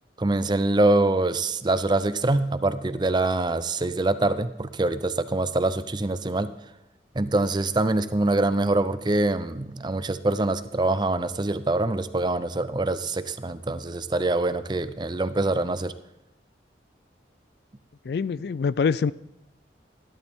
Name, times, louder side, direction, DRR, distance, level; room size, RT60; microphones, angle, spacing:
voice 1, 0.2-6.5 7.1-15.9, right 2 dB, 25° right, 13 dB, 0.5 m, -24 dB
voice 2, 18.1-19.1, left 5 dB, 65° left, 19 dB, 0.3 m, -24 dB
14.0 x 12.5 x 3.6 m, 0.92 s
head